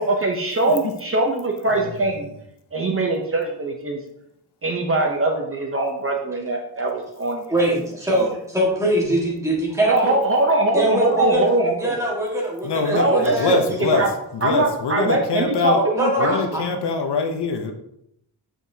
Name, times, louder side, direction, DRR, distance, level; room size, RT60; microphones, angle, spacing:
voice 1, 0.0-2.3 2.7-4.0 4.6-7.4 8.2-8.3 9.9-12.0 12.9-13.6 13.9-14.1 14.4-16.4, right 2 dB, 30° right, 2 dB, 0.7 m, -22 dB
voice 2, 7.5-10.1 10.7-11.5 11.8-13.5 13.9-14.0 15.7-16.6, right 1 dB, 5° right, -3 dB, 1.6 m, -22 dB
voice 3, 12.6-14.1 14.3-15.8 16.2-17.7, left 4 dB, 65° left, 5 dB, 0.8 m, -24 dB
6.8 x 6.0 x 2.7 m, 0.77 s
wide cardioid pair, 170°, 44 cm